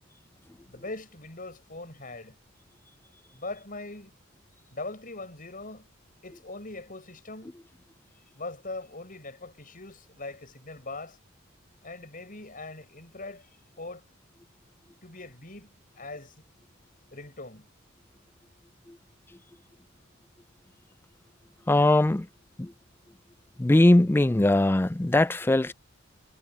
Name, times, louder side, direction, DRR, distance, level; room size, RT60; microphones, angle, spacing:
voice 1, 0.7-2.4 3.3-4.1 4.7-5.9 6.2-7.5 8.3-11.2 11.8-14.0 15.0-16.3 17.1-17.7, left 2 dB, 40° left, 7.3 m, -41 dB
voice 2, 21.7-22.3 22.6-22.7 23.6-25.7, left 1 dB, 10° left, 0.3 m, -20 dB
head